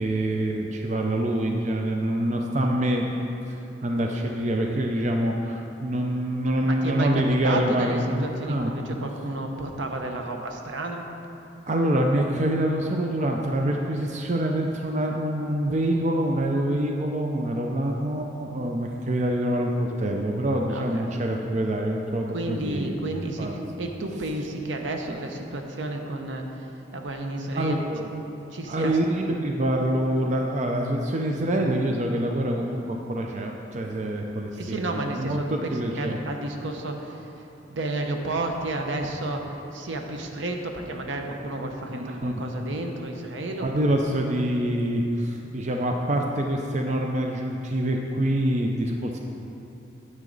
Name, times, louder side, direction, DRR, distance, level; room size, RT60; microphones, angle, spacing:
voice 1, 0.0-3.1 3.5-8.7 11.7-22.9 23.4-23.5 27.5-28.1 28.7-36.2 41.9-42.4 43.6-49.2, right 1 dB, 35° right, 1 dB, 0.5 m, -26 dB
voice 2, 6.6-11.1 20.7-21.1 22.3-27.9 28.5-29.0 34.6-43.8, right 2 dB, 75° right, 3 dB, 0.8 m, -32 dB
9.3 x 7.6 x 3.9 m, 2.9 s
head